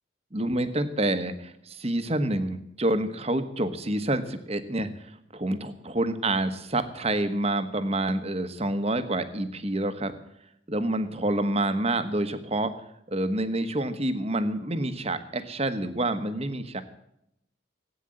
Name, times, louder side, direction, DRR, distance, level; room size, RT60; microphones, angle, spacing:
voice 1, 0.3-10.1 10.7-12.7 13.1-16.8, right 1 dB, 30° right, 10 dB, 1.2 m, -28 dB
17.0 x 9.3 x 7.7 m, 0.78 s
head